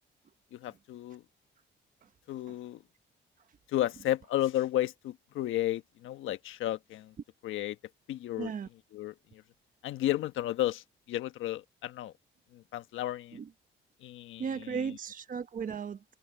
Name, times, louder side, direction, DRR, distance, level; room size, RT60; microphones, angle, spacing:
voice 1, 0.5-1.2 2.3-2.8 3.7-7.1 7.4-7.8 8.1-8.5 8.9-9.4 9.8-12.1 12.5-13.4 14.0-14.9, left 13 dB, 85° left, 1.3 m, -33 dB
voice 2, 8.4-8.7 13.3-13.5 14.4-16.0, right 6 dB, 45° right, 1.0 m, -36 dB
cardioid pair, 90°, 20 cm